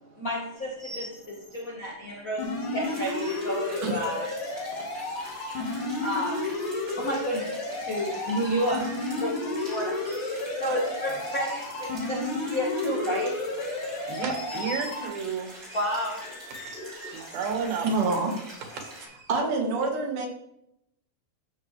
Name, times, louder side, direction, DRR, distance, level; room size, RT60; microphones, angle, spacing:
voice 1, 0.0-5.3 5.9-13.6 15.7-16.2, equal, 85° left, -2 dB, 0.7 m, -32 dB
sound 1, 0.6-1.7 2.3-4.0 5.2-5.6 6.4-6.9 7.6-9.8 10.0-10.3 10.7-13.2 13.5-15.0 15.7-18.0 18.4-19.4, equal, 30° left, 4.5 m, -47 dB
sound 2, 2.4-15.1, left 2 dB, 60° left, 2.6 m, -32 dB
sound 3, 2.8-19.1, right 1 dB, 30° right, 4.4 m, -45 dB
voice 2, 14.1-15.5 17.1-17.9, right 6 dB, 85° right, 4 dB, 3.3 m, -31 dB
voice 3, 17.8-18.3 19.3-20.3, right 3 dB, 70° right, 1 dB, 3.0 m, -27 dB
13.5 x 7.1 x 3.2 m, 0.80 s
omnidirectional pair, 4.0 m